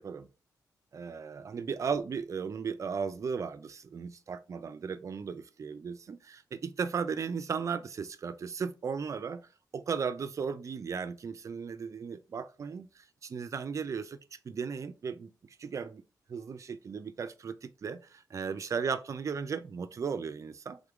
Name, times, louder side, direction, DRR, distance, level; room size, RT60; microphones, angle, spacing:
voice 1, 0.9-9.4 9.7-15.3 15.6-16.0 16.3-20.8, right 6 dB, 45° right, 0.4 m, -36 dB
3.7 x 3.5 x 3.5 m
wide cardioid pair, 120°, 7 cm